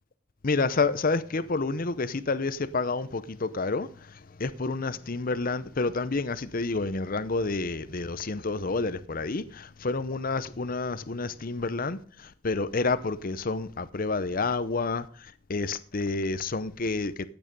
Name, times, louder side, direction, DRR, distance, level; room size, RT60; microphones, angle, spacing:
voice 1, 0.4-17.1, left 3 dB, 45° left, 0.7 m, -29 dB
15.0 x 9.0 x 5.3 m
head